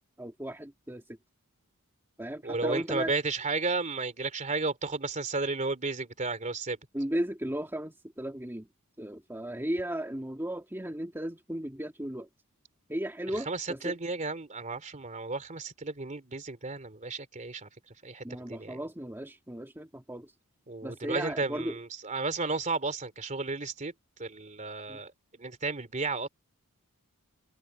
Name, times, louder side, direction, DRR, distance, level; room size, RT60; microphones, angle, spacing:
voice 1, 0.2-1.0 2.2-3.1 6.9-8.7 9.0-12.3 12.9-14.0 18.2-20.3 20.8-21.7 24.9-25.0, right 1 dB, 10° right, 2.2 m, -35 dB
voice 2, 2.4-6.8 13.5-17.7 18.0-18.8 20.7-23.9 24.2-26.3, right 3 dB, 35° right, 2.8 m, -33 dB
head